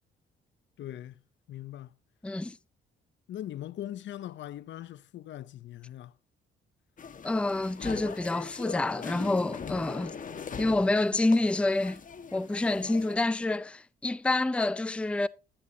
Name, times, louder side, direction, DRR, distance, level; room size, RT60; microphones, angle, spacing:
voice 1, 0.8-1.2 1.5-1.9 3.3-6.1, left 12 dB, 70° left, 0.7 m, -40 dB
voice 2, 2.2-2.6 7.2-10.1 10.6-12.0 12.3-15.3, left 2 dB, 5° left, 0.5 m, -27 dB
sound 1, 7.0-13.2, left 6 dB, 40° left, 1.6 m, -41 dB
16.0 x 11.0 x 2.8 m
cardioid pair, 90°, 20 cm